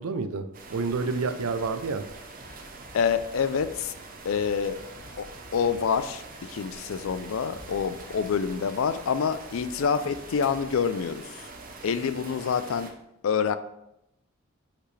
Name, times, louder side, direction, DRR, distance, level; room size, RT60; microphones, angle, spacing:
voice 1, 0.0-2.1, right 4 dB, 80° right, 10 dB, 0.5 m, -29 dB
sound 1, 0.5-12.9, right 3 dB, 40° right, 0.7 m, -44 dB
sound 2, 2.0-3.5 3.7-6.0 6.3-6.7 6.9-10.8, equal, 10° left, 1.3 m, -52 dB
voice 2, 2.9-3.9 4.2-4.8 5.2-11.5 11.8-12.9 13.2-13.6, left 6 dB, 70° left, 12 dB, 0.4 m, -27 dB
6.0 x 5.6 x 3.2 m, 0.85 s
head